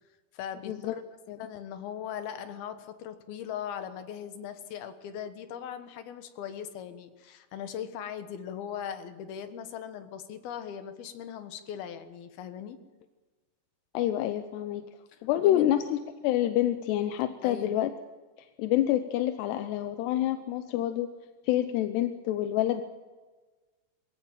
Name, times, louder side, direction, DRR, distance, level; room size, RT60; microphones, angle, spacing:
voice 1, 0.3-1.0 1.4-12.8 15.1-15.8 17.4-17.8, left 8 dB, 70° left, 9 dB, 3.1 m, -39 dB
voice 2, 13.9-14.8 15.2-17.9 18.6-21.1 21.5-22.8, left 12 dB, 90° left, 8 dB, 3.0 m, -27 dB
22.0 x 17.0 x 8.9 m, 1.3 s
omnidirectional pair, 4.7 m